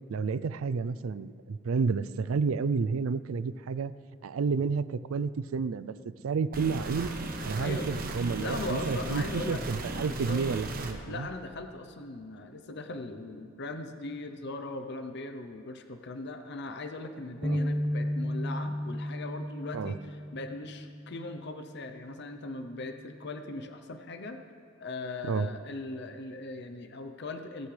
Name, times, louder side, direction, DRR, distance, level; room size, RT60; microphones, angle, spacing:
voice 1, 0.1-3.9 4.2-5.9 6.2-7.1 7.4-11.3 17.4-17.6 19.7-19.9 25.3-25.5, right 5 dB, 85° right, 15 dB, 0.4 m, -30 dB
sound 1, 6.5-10.9, right 2 dB, 45° right, 1.1 m, -36 dB
voice 2, 7.6-8.1 8.4-9.6 10.0-10.4 11.1-24.4 24.8-27.7, left 2 dB, 55° left, 7 dB, 0.7 m, -39 dB
sound 2, 17.4-21.7 22.2-22.4 23.2-23.7, equal, ahead, 0.4 m, -34 dB
17.5 x 14.0 x 3.3 m, 2.5 s
head